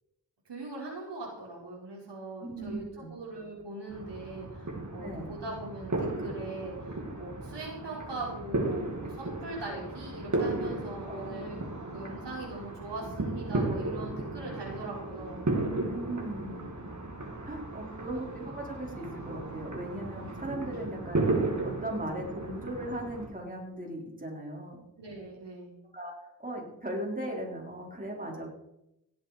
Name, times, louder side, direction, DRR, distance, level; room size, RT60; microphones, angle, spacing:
voice 1, 0.5-6.7 7.2-11.6 11.9-15.4 18.1-18.2 25.0-25.8, right 2 dB, 80° right, -3 dB, 4.9 m, -41 dB
voice 2, 2.4-3.1 5.0-5.3 11.1-11.4 12.1-12.2 15.6-16.6 17.4-21.3 21.6-24.8 25.9-28.5, right 1 dB, 20° right, -2 dB, 4.6 m, -38 dB
sound 1, 3.9-23.3, right 2 dB, 45° right, 3.2 m, -35 dB
18.0 x 7.7 x 5.1 m, 0.84 s
cardioid pair, 60°, 41 cm